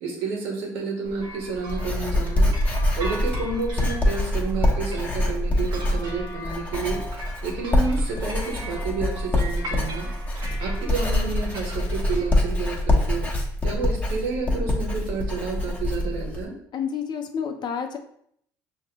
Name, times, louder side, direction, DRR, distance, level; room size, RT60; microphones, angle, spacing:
voice 1, 0.0-7.0 7.4-10.1 10.6-13.3 13.6-16.5, right 4 dB, 75° right, -1 dB, 1.3 m, -30 dB
Writing, 1.1-16.4, left 1 dB, 15° left, 1.1 m, -25 dB
sound 1, 1.2-12.3, right 1 dB, 55° right, 1.2 m, -40 dB
voice 2, 16.7-18.0, left 7 dB, 50° left, 6 dB, 0.6 m, -29 dB
5.8 x 2.8 x 3.0 m, 0.70 s
supercardioid pair, 65°, 9 cm